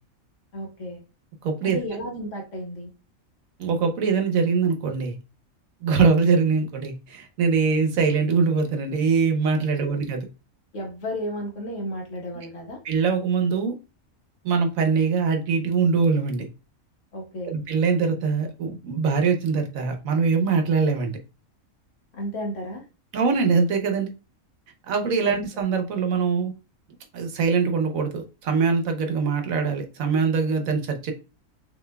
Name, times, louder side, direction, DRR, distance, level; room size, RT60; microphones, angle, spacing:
voice 1, 0.5-1.0 1.6-2.9 9.8-10.0 10.7-12.8 17.1-17.5 22.1-22.9, equal, 60° left, 0 dB, 1.6 m, -33 dB
voice 2, 1.4-1.8 3.6-5.1 5.8-10.2 12.8-13.7 14.4-16.4 17.5-21.2 23.1-24.1 24.9-26.5 27.1-31.1, right 5 dB, 70° right, 5 dB, 1.2 m, -23 dB
6.0 x 2.9 x 2.2 m, 0.30 s
omnidirectional pair, 1.5 m